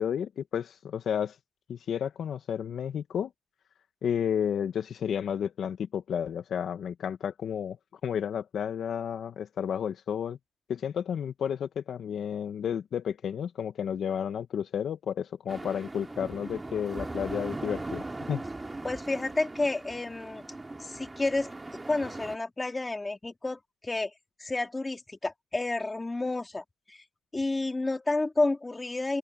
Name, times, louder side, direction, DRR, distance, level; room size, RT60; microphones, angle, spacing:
voice 1, 0.0-1.4 1.7-3.3 4.0-7.8 8.0-10.4 10.7-18.4, left 8 dB, 60° left, 1.4 m, -32 dB
sound 1, 15.5-22.4, right 2 dB, 20° right, 2.4 m, -39 dB
voice 2, 18.8-20.4 20.8-21.5 21.9-24.1 24.4-27.0 27.3-29.2, left 2 dB, 20° left, 3.1 m, -30 dB
open air
cardioid pair, 90°, 0 cm